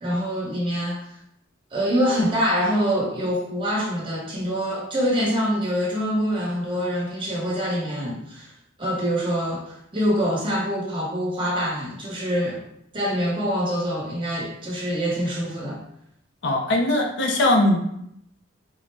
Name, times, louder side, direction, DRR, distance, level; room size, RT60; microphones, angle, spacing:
voice 1, 0.0-1.0 1.7-8.5 8.8-12.6 12.9-15.8, equal, 25° right, -4 dB, 0.9 m, -25 dB
voice 2, 16.4-17.8, left 1 dB, 60° left, 2 dB, 0.5 m, -20 dB
3.7 x 2.1 x 3.3 m, 0.75 s
head